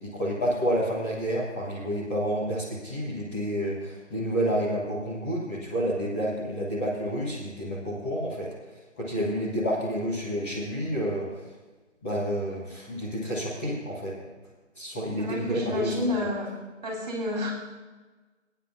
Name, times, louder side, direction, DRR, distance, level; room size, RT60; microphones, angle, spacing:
voice 1, 0.0-8.5 9.0-11.3 12.0-14.1 14.7-15.9, equal, 10° left, -9 dB, 1.3 m, -29 dB
voice 2, 15.2-16.5 16.8-17.5, left 1 dB, 35° right, -4 dB, 3.6 m, -29 dB
23.0 x 9.4 x 2.7 m, 1.3 s
figure-of-eight pair, 155°, 37 cm